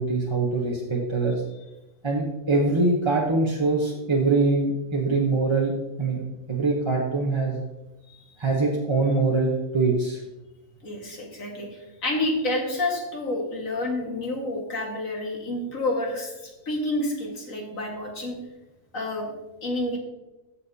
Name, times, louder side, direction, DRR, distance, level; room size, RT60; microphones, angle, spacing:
voice 1, 0.0-1.4 2.0-6.2 6.5-7.6 8.4-10.2, right 3 dB, 25° right, -2 dB, 0.8 m, -23 dB
voice 2, 10.8-18.4 18.9-19.3 19.6-20.0, left 1 dB, 70° left, 0 dB, 2.1 m, -29 dB
15.0 x 5.7 x 2.8 m, 1.0 s
omnidirectional pair, 1.4 m